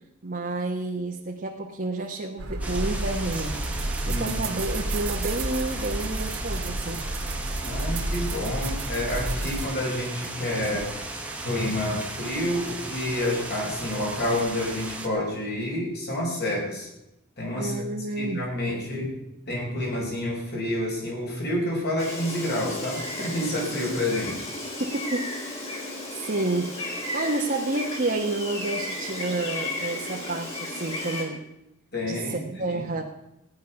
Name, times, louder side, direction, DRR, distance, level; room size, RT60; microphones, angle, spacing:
voice 1, 0.2-3.6 4.1-7.1 17.5-18.5 24.8-25.4 25.7-25.9 26.1-31.4 32.0-33.0, right 2 dB, 40° right, 0 dB, 1.2 m, -30 dB
sound 1, 2.4-9.7, right 2 dB, 65° right, 2.0 m, -30 dB
sound 2, 2.6-15.1, right 2 dB, 5° right, 1.6 m, -36 dB
voice 2, 4.1-4.6 7.6-10.9 11.4-16.9 17.4-19.1 19.5-24.5 31.9-32.8, left 1 dB, 50° left, -2 dB, 4.9 m, -29 dB
Gull seagull, 22.0-31.2, left 2 dB, 30° left, 4.1 m, -34 dB
16.5 x 10.5 x 5.9 m, 0.88 s
head